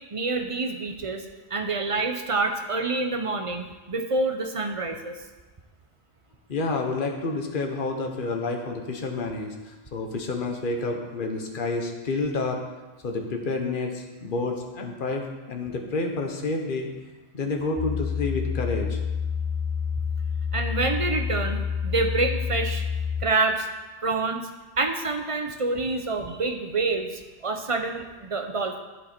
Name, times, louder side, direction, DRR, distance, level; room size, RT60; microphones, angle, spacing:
voice 1, 0.1-1.2 1.5-5.1 20.5-22.8 23.2-23.7 24.0-24.5 24.8-28.8, right 3 dB, 30° right, 5 dB, 0.7 m, -27 dB
voice 2, 6.5-12.6 13.0-16.9 17.3-19.0, left 3 dB, 45° left, 2 dB, 1.2 m, -29 dB
sound 1, 17.8-23.3, left 6 dB, 25° left, 0.5 m, -28 dB
11.0 x 7.7 x 4.4 m, 1.2 s
omnidirectional pair, 1.2 m